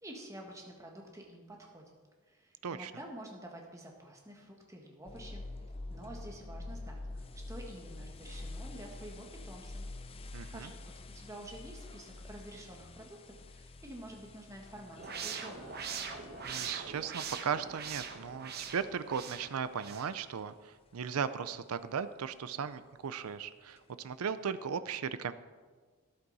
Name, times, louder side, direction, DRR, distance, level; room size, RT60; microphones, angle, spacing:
voice 1, 0.0-1.8 2.3-5.4 5.9-9.9 10.5-15.8, right 1 dB, 15° right, 0 dB, 1.6 m, -49 dB
sound 1, 5.1-19.9 20.4-20.5 21.1-21.2 23.8-23.9, left 2 dB, 25° left, 0.5 m, -47 dB
voice 2, 10.3-10.7 16.4-25.3, right 7 dB, 85° right, 13 dB, 0.5 m, -37 dB
sound 2, 15.0-20.1, right 6 dB, 45° right, 1.0 m, -42 dB
12.5 x 10.5 x 4.1 m, 1.4 s
head